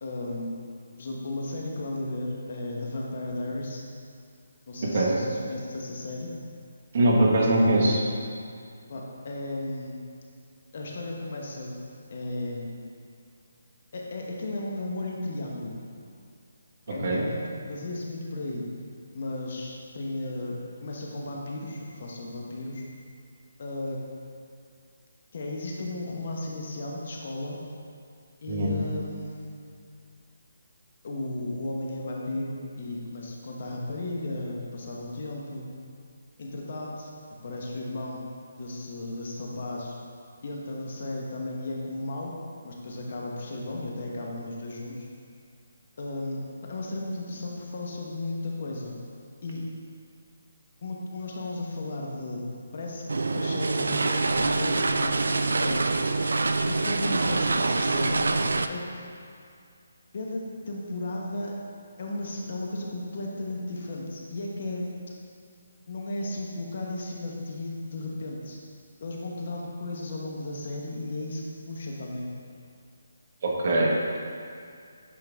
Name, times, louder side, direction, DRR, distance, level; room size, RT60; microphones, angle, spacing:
voice 1, 0.0-0.6 1.0-3.8 4.7-6.3 8.9-10.0 10.7-11.7 12.1-12.8 13.9-15.8 16.9-18.6 19.1-22.8 23.6-24.0 25.3-27.6 28.4-29.5 31.0-35.7 36.4-37.1 37.4-38.2 38.6-39.9 40.4-42.3 42.6-45.1 46.0-48.9 49.4-49.6 50.8-52.4 52.7-53.1 53.3-55.9 56.7-58.3 58.7-59.0 60.1-61.6 62.0-64.9 65.9-68.6 69.0-72.3, left 2 dB, 50° left, -2 dB, 1.0 m, -34 dB
voice 2, 6.9-8.0 16.9-17.2 28.5-28.7 73.4-73.9, right 1 dB, 45° right, -4 dB, 1.3 m, -22 dB
sound 1, 53.1-58.7, right 3 dB, 80° right, 0.3 m, -25 dB
8.6 x 3.8 x 3.5 m, 2.3 s
hypercardioid pair, 165°, 0 cm